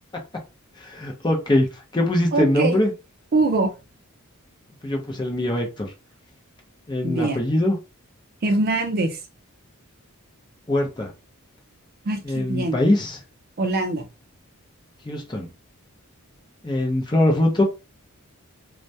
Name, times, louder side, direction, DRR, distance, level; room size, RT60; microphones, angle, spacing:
voice 1, 0.8-1.7 1.9-2.9 4.8-5.9 6.9-7.8 10.7-11.1 12.2-13.2 15.1-15.5 16.6-17.6, left 1 dB, 20° left, 1 dB, 0.5 m, -22 dB
voice 2, 2.3-2.8 3.3-3.7 7.0-7.4 8.4-9.2 12.1-12.8 13.6-14.1, right 3 dB, 45° right, 5 dB, 0.4 m, -23 dB
2.2 x 2.1 x 2.6 m, 0.29 s
head